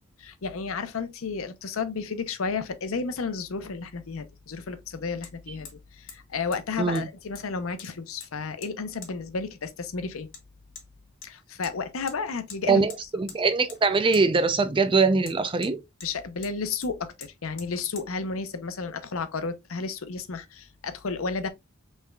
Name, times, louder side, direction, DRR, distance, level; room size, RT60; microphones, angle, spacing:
voice 1, 0.2-10.3 11.2-12.8 16.0-21.5, left 4 dB, 90° left, 0.7 m, -32 dB
Hammer, 5.2-5.3 5.6-5.8 6.1-6.2 6.5-6.6 6.9-7.5 7.8-8.3 8.6-8.7 9.0-9.1 10.3-10.4 10.8-10.9 11.2-11.7 12.1-12.2 12.5-12.6 12.9-13.4 13.7-13.8 14.1-14.3 15.2-16.1 16.4-16.5 16.8-16.9 17.2-17.3 17.6-17.7 18.0-18.1, left 7 dB, 65° left, 1.3 m, -44 dB
voice 2, 12.7-15.8, right 4 dB, 25° right, 0.5 m, -22 dB
5.4 x 3.3 x 2.3 m
head